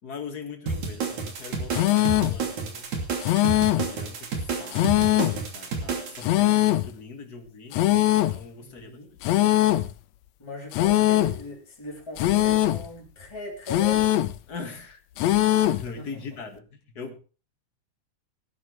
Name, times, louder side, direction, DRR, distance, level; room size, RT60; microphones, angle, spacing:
voice 1, 0.0-2.9 3.7-7.9 8.3-9.3 14.5-15.0 15.7-17.2, left 5 dB, 35° left, 4 dB, 2.3 m, -41 dB
sound 1, 0.7-6.2, right 4 dB, 70° right, 4.1 m, -30 dB
sound 2, 1.7-2.4 3.2-3.9 4.7-5.4 6.2-6.9 7.7-8.4 9.2-9.9 10.7-11.4 12.2-12.9 13.7-14.4 15.2-15.9, left 15 dB, 75° left, 1.9 m, -21 dB
voice 2, 8.6-9.1 10.4-14.2 16.0-16.1, left 1 dB, 10° left, -2 dB, 3.4 m, -39 dB
17.5 x 12.0 x 3.4 m, 0.34 s
omnidirectional pair, 3.5 m